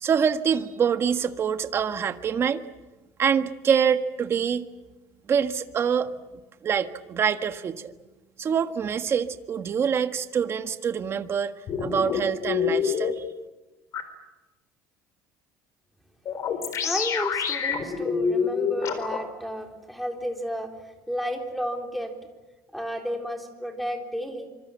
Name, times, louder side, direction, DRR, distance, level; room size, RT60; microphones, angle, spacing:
voice 1, 0.0-2.6 3.2-4.7 5.3-6.1 6.6-7.9 8.4-11.5 11.8-13.2, right 7 dB, 35° right, 9 dB, 1.5 m, -25 dB
sound 1, 11.7-13.1 13.9-14.0 16.3-19.2, left 7 dB, 45° left, 4.1 m, -26 dB
voice 2, 16.8-22.1 22.7-24.5, equal, ahead, 3 dB, 3.8 m, -32 dB
26.0 x 25.0 x 7.4 m, 1.1 s
cardioid pair, 145°, 7 cm